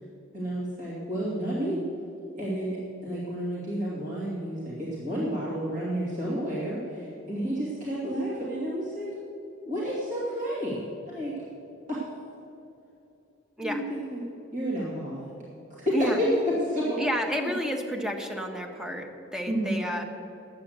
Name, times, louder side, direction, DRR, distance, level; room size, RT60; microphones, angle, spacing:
voice 1, 0.3-1.8 2.4-9.1 9.6-11.3 11.9-12.0 13.6-14.2 14.5-15.3 15.7-17.0 19.5-19.8, equal, 40° right, -8 dB, 2.6 m, -30 dB
voice 2, 17.0-20.0, equal, 5° right, 2 dB, 1.0 m, -30 dB
10.5 x 8.6 x 8.0 m, 2.8 s
head